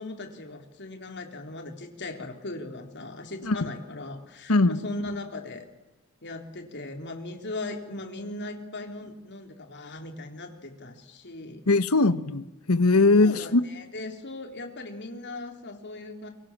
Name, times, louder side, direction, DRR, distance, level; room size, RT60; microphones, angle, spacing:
voice 1, 0.0-5.7 6.2-11.6 13.1-16.3, left 2 dB, 55° left, 5 dB, 3.9 m, -38 dB
voice 2, 11.7-13.6, left 3 dB, 75° left, 13 dB, 1.3 m, -20 dB
30.0 x 24.0 x 7.5 m, 1.0 s
head